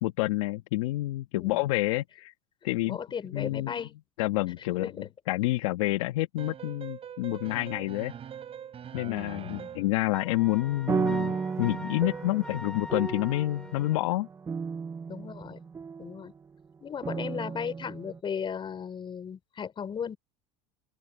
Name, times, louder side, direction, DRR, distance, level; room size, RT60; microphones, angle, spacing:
voice 1, 0.0-2.3 2.6-3.0 3.3-3.7 4.2-4.9 5.3-8.1 8.9-14.3, left 18 dB, 80° left, 1.2 m, -28 dB
voice 2, 2.8-4.0 4.8-5.1 9.0-9.7 15.1-15.6 16.0-16.3 16.8-20.2, left 7 dB, 30° left, 4.6 m, -36 dB
sound 1, 6.4-10.0, right 9 dB, 35° right, 6.5 m, -43 dB
Wind instrument woodwind instrument, 10.1-14.1, left 1 dB, 5° left, 1.5 m, -44 dB
sound 2, 10.4-16.4 17.0-18.2, right 5 dB, 15° right, 0.5 m, -34 dB
open air
supercardioid pair, 105°, 16 cm